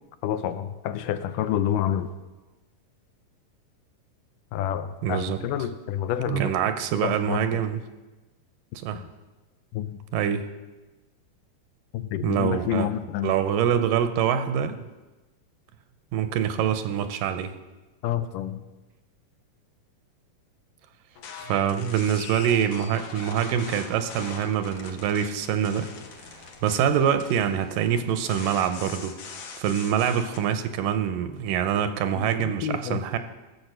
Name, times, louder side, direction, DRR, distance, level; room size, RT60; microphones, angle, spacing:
voice 1, 0.2-2.1 4.5-6.5 7.0-7.4 8.9-9.0 9.7-10.0 11.9-13.3 18.0-18.7 32.2-33.0, left 10 dB, 80° left, 11 dB, 2.1 m, -28 dB
voice 2, 5.0-5.4 6.3-7.8 8.8-9.0 10.1-10.5 12.2-12.9 13.2-14.8 16.1-17.5 21.4-25.9 26.6-29.2 29.6-33.2, right 9 dB, 85° right, 9 dB, 2.4 m, -25 dB
sound 1, 21.2-30.4, left 5 dB, 65° left, 2.3 m, -42 dB
15.0 x 6.9 x 6.3 m, 1.1 s
omnidirectional pair, 3.9 m